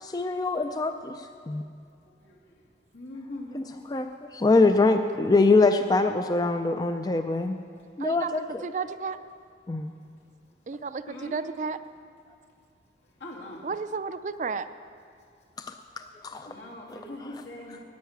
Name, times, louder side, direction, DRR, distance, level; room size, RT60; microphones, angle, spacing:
voice 1, 0.0-1.1 1.5-1.6 3.5-7.6 8.0-8.6 9.7-9.9 16.2-16.5 16.9-17.3, left 3 dB, 20° left, 7 dB, 0.4 m, -24 dB
voice 2, 2.9-3.8 11.1-11.4 13.2-13.6 16.5-17.8, left 1 dB, 80° left, -3 dB, 2.6 m, -41 dB
voice 3, 8.0-8.4 8.6-9.2 10.7-11.8 13.6-14.6, right 5 dB, 45° right, 12 dB, 0.4 m, -32 dB
10.5 x 8.0 x 9.2 m, 2.3 s
head